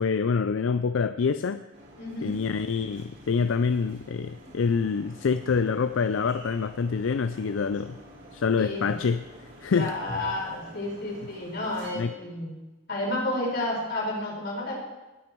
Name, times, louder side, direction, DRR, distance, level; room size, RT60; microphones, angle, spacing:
voice 1, 0.0-1.6 2.2-8.0 8.3-9.2 9.6-9.9 12.0-12.1, left 5 dB, 80° left, 12 dB, 0.4 m, -26 dB
sound 1, 1.7-12.0, equal, 60° right, 4.9 m, -47 dB
voice 2, 2.0-2.4 8.6-8.9 9.7-12.5 12.9-14.7, left 1 dB, 60° left, -3 dB, 4.8 m, -31 dB
19.5 x 8.5 x 4.6 m, 1.1 s
head